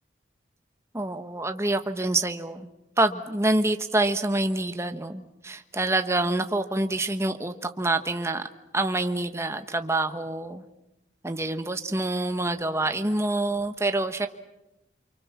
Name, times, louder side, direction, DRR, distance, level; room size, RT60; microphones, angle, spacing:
voice 1, 0.9-2.7 3.0-8.5 8.7-10.6 11.2-14.3, right 2 dB, 15° right, 8 dB, 1.2 m, -26 dB
28.5 x 25.0 x 7.3 m, 0.94 s
head